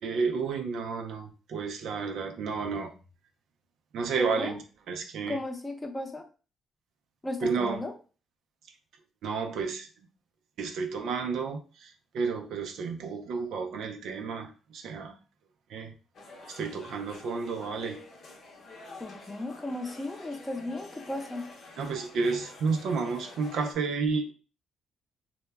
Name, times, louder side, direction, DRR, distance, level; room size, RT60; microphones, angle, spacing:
voice 1, 0.0-2.9 3.9-4.6 4.9-5.4 7.4-7.8 9.2-10.1 10.6-15.2 15.7-15.9 16.5-18.0 21.8-24.3, right 5 dB, 75° right, 5 dB, 0.4 m, -31 dB
voice 2, 4.2-4.5 5.3-6.2 7.2-7.9 19.0-21.5, left 2 dB, 15° left, 3 dB, 0.6 m, -35 dB
sound 1, 16.1-23.7, left 2 dB, 60° left, 0.7 m, -48 dB
2.2 x 2.0 x 3.3 m, 0.35 s
cardioid pair, 90°, 0 cm